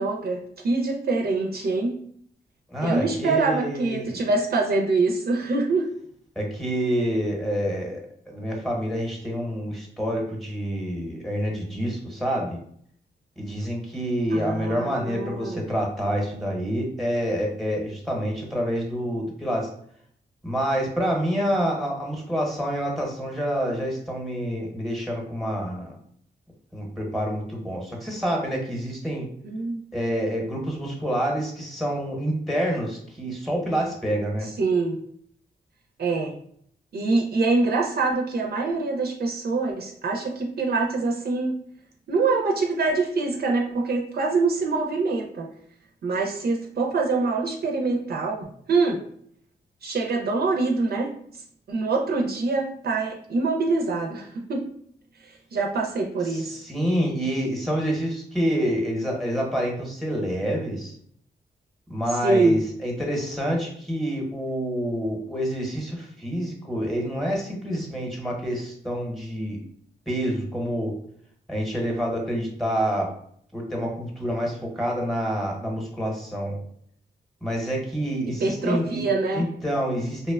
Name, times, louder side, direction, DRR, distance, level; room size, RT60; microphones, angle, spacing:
voice 1, 0.0-2.0 2.8-5.9 14.3-15.6 29.4-29.8 34.4-35.0 36.0-36.4 36.9-41.5 42.1-45.5 46.0-49.0 49.8-51.1 51.7-54.6 55.2-56.5 62.2-62.6 78.4-79.5, right 3 dB, 60° right, 1 dB, 0.4 m, -25 dB
voice 2, 2.7-4.1 6.4-12.6 13.4-19.7 20.4-25.9 26.7-29.3 29.9-34.5 56.3-60.9 61.9-69.6 70.1-70.9 71.5-73.1 73.5-76.6 77.4-79.0 79.3-80.3, equal, ahead, -1 dB, 0.8 m, -27 dB
2.8 x 2.1 x 2.3 m, 0.64 s
cardioid pair, 85°, 18 cm